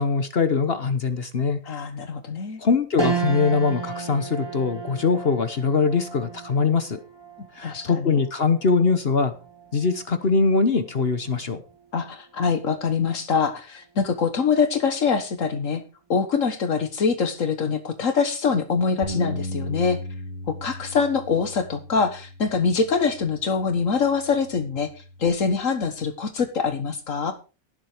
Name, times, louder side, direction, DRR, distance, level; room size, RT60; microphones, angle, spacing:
voice 1, 0.0-1.8 2.6-7.0 7.5-9.3 9.7-11.6, left 4 dB, 50° left, 10 dB, 1.3 m, -22 dB
voice 2, 1.7-2.6 7.6-8.2 11.9-15.8 16.1-20.0 20.5-27.3, left 5 dB, 80° left, 8 dB, 1.7 m, -24 dB
sound 1, 3.0-12.6 13.1-13.2 14.5-14.9, right 4 dB, 20° right, 1.9 m, -35 dB
Bass guitar, 19.0-25.3, equal, 35° right, 2.9 m, -37 dB
17.5 x 7.5 x 5.0 m, 0.33 s
omnidirectional pair, 1.3 m